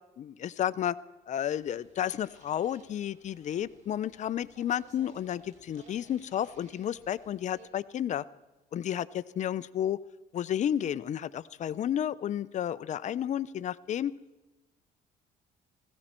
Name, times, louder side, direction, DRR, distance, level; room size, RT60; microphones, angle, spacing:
voice 1, 0.2-1.0 1.3-8.2 8.7-10.0 10.3-14.1, left 10 dB, 45° left, 15 dB, 0.6 m, -32 dB
sound 1, 1.4-7.7, right 3 dB, 45° right, 2.8 m, -60 dB
19.0 x 15.5 x 4.4 m, 1.0 s
cardioid pair, 110°, 17 cm